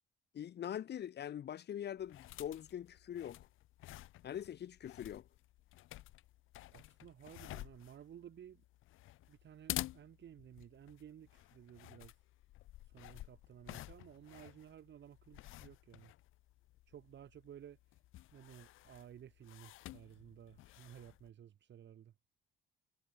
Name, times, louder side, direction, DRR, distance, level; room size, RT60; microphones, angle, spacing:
voice 1, 0.3-3.4 4.2-5.2, left 10 dB, 55° left, 1.1 m, -43 dB
sound 1, 2.0-21.3, left 16 dB, 90° left, 2.2 m, -51 dB
voice 2, 6.7-8.6 9.3-12.2 12.8-16.1 16.9-18.0 18.3-22.1, right 10 dB, 65° right, 6.4 m, -56 dB
cardioid pair, 90°, 20 cm